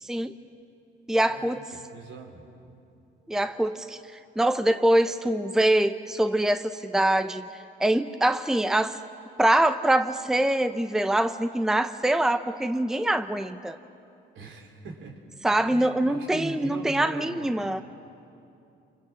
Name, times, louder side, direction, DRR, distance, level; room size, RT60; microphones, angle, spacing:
voice 1, 0.0-0.3 1.1-1.6 3.3-4.0 4.4-7.5 7.8-9.0 9.4-13.8 15.4-17.8, right 1 dB, ahead, 10 dB, 0.8 m, -24 dB
voice 2, 1.3-2.5 14.3-15.2 15.6-17.7, right 3 dB, 75° right, 3 dB, 3.8 m, -41 dB
28.0 x 24.5 x 7.5 m, 2.7 s
cardioid pair, 90°, 20 cm